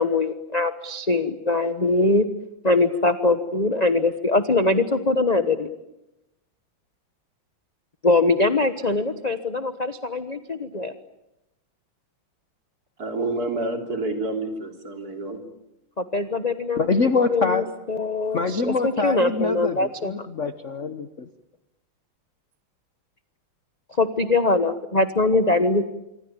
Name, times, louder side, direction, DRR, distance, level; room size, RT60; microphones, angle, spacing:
voice 1, 0.0-2.3 2.6-5.7 8.0-10.9 16.0-16.9 17.3-20.3 24.0-25.8, left 2 dB, 25° left, 10 dB, 0.9 m, -22 dB
voice 2, 13.0-15.4, right 2 dB, 45° right, 5 dB, 3.9 m, -28 dB
voice 3, 16.8-17.7 18.3-21.3, left 4 dB, 45° left, 10 dB, 1.2 m, -24 dB
26.5 x 24.0 x 8.9 m, 0.90 s
omnidirectional pair, 2.2 m